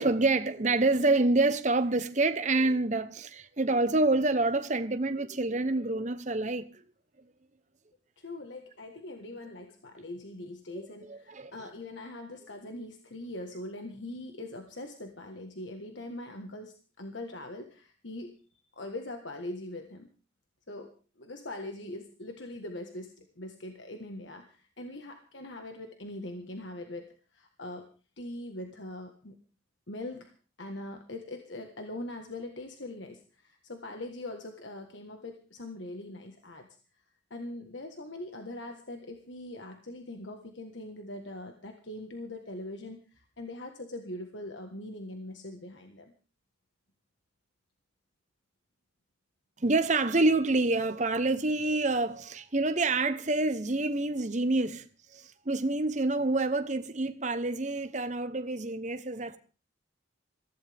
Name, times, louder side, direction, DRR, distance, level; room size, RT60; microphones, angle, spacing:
voice 1, 0.0-6.8 10.7-10.8 11.1-11.5 49.6-54.9 55.1-59.4, right 2 dB, 40° right, 1.0 m, -27 dB
voice 2, 8.2-18.4 18.7-20.1 20.7-27.9 28.2-29.4 29.9-30.3 30.6-36.7 37.3-46.1, left 1 dB, 70° left, 1.6 m, -42 dB
22.5 x 15.5 x 3.6 m
head